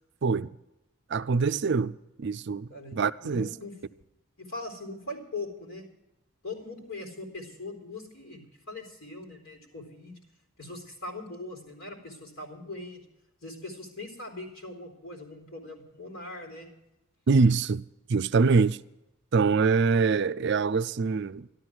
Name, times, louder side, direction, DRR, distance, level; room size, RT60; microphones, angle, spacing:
voice 1, 1.1-3.5 17.3-17.8 18.1-18.8 19.3-21.5, right 4 dB, 50° right, 0.4 m, -24 dB
voice 2, 2.7-3.7 4.4-5.8 6.4-10.2 10.6-13.0 13.4-16.7, left 2 dB, 70° left, 4.0 m, -41 dB
13.0 x 13.0 x 6.1 m
head